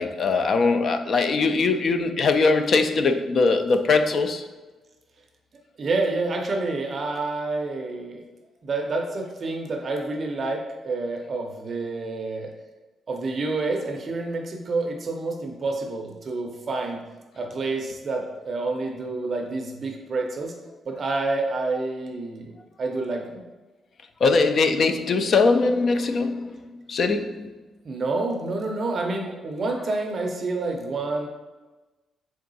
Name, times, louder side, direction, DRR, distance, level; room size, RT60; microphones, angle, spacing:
voice 1, 0.0-4.5 24.2-26.6 26.9-27.5, left 4 dB, 45° left, 0.3 m, -21 dB
voice 2, 5.8-8.2 8.6-12.5 13.1-17.0 17.3-20.5 20.9-22.5 22.8-23.4 27.8-31.3, right 3 dB, 35° right, 0.5 m, -28 dB
3.7 x 3.4 x 4.0 m
wide cardioid pair, 170°, 0 cm